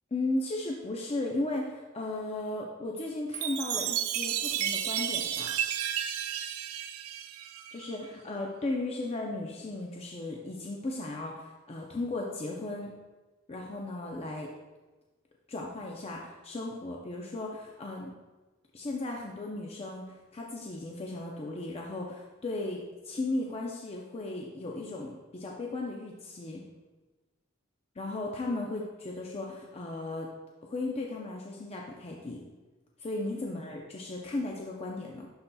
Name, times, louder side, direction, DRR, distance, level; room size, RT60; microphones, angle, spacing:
voice 1, 0.1-5.5 7.7-12.9 13.5-14.5 15.5-18.1 18.7-26.6 28.0-30.3 30.6-32.4 33.0-35.3, left 2 dB, 30° left, -1 dB, 0.5 m, -36 dB
Chime, 3.3-7.9, right 10 dB, 90° right, 0.4 m, -32 dB
11.0 x 4.0 x 2.3 m, 1.2 s
head